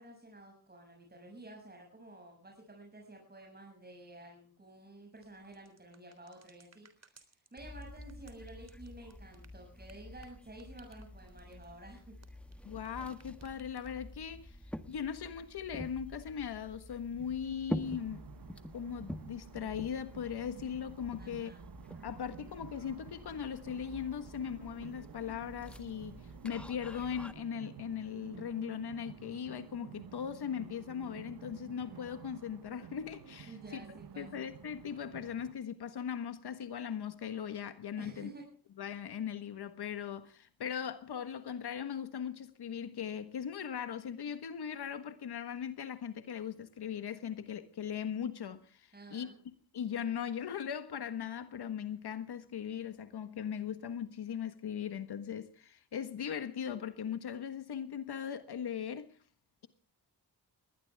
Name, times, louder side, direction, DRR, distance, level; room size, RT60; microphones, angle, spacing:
voice 1, 0.0-12.1 21.2-21.6 33.5-34.5 38.0-38.4 48.9-49.4, right 1 dB, 25° right, 6.9 m, -52 dB
sound 1, 5.2-12.9 13.1-14.2, right 4 dB, 40° right, 3.6 m, -62 dB
sound 2, 7.6-27.3, left 1 dB, 5° left, 1.5 m, -47 dB
voice 2, 12.6-14.6 14.9-18.2 18.7-21.5 22.0-33.6 33.9-38.3 38.8-49.3 49.7-59.1, left 8 dB, 75° left, 1.5 m, -39 dB
sound 3, 17.8-35.5, right 9 dB, 65° right, 1.1 m, -52 dB
21.0 x 18.5 x 3.5 m
cardioid pair, 100°, 39 cm